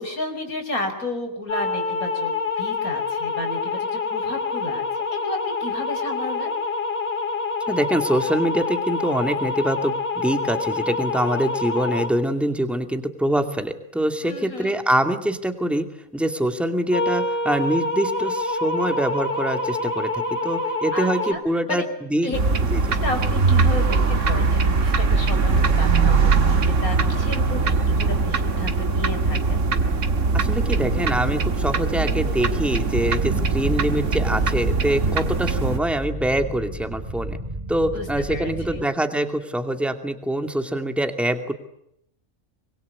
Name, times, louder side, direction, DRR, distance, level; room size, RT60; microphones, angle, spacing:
voice 1, 0.0-6.5 14.2-14.7 20.9-21.9 22.2-22.6 23.0-29.6 37.9-38.8, left 1 dB, 85° left, 5 dB, 5.3 m, -32 dB
sound 1, 1.5-12.1 16.9-21.3, left 3 dB, 45° left, 3.3 m, -26 dB
voice 2, 7.7-15.9 16.1-21.8 22.1-22.4 22.7-22.8 30.3-37.4 37.7-41.5, right 1 dB, ahead, 6 dB, 2.4 m, -24 dB
sound 2, 22.3-35.8, right 4 dB, 60° right, 2.0 m, -21 dB
sound 3, 33.2-38.8, right 2 dB, 25° right, 2.0 m, -32 dB
25.5 x 22.5 x 8.5 m, 0.77 s
omnidirectional pair, 1.5 m